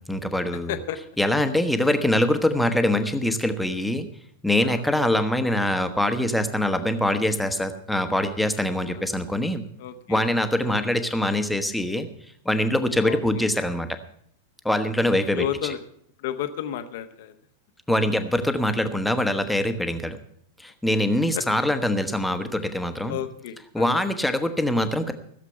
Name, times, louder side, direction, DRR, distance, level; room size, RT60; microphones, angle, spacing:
voice 1, 0.1-0.7 1.2-4.1 4.4-9.6 10.1-12.1 12.4-14.0 14.6-15.4 17.9-20.2 20.6-23.2 23.7-25.1, left 1 dB, 5° left, 8 dB, 1.2 m, -23 dB
voice 2, 9.8-10.2 10.6-10.8 13.0-13.5 15.4-15.8 16.2-17.3 21.3-21.4 23.1-24.0, left 10 dB, 55° left, 9 dB, 1.2 m, -32 dB
15.5 x 7.4 x 7.8 m, 0.66 s
figure-of-eight pair, 90°, 0 cm